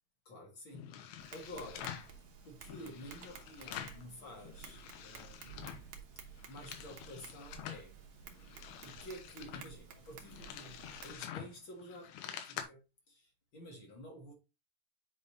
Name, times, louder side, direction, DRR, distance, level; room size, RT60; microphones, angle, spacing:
voice 1, 0.2-1.9 2.4-5.6 6.1-7.9 8.8-14.3, equal, 50° left, 1.6 m, -51 dB
sound 1, 0.7-2.1 2.6-4.1 4.4-5.9 6.3-7.9 8.3-12.6, left 9 dB, 75° left, 2.8 m, -47 dB
Tap, 1.2-11.2, right 7 dB, 75° right, 1.7 m, -53 dB
8.7 x 5.5 x 2.7 m
omnidirectional pair, 4.7 m